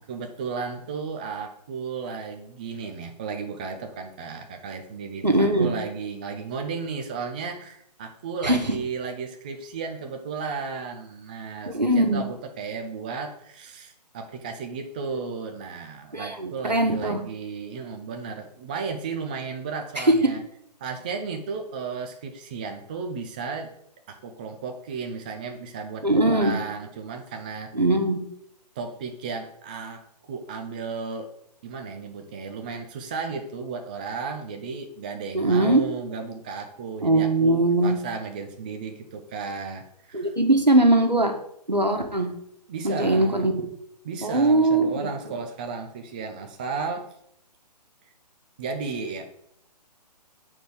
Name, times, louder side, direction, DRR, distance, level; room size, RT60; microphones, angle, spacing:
voice 1, 0.1-20.4 20.8-23.7 24.1-27.7 28.8-31.3 31.6-40.3 42.7-43.5 44.0-47.1 48.6-49.3, right 5 dB, 15° right, 4 dB, 0.3 m, -34 dB
voice 2, 5.2-5.7 8.4-8.7 11.7-12.2 16.1-17.2 20.0-20.1 26.0-26.6 27.7-28.2 35.3-35.8 37.0-38.0 40.1-41.3 41.7-42.3 42.8-43.7 44.2-45.3, right 2 dB, 90° right, 3 dB, 1.4 m, -21 dB
7.6 x 4.4 x 4.7 m, 0.72 s
figure-of-eight pair, 130°, 21 cm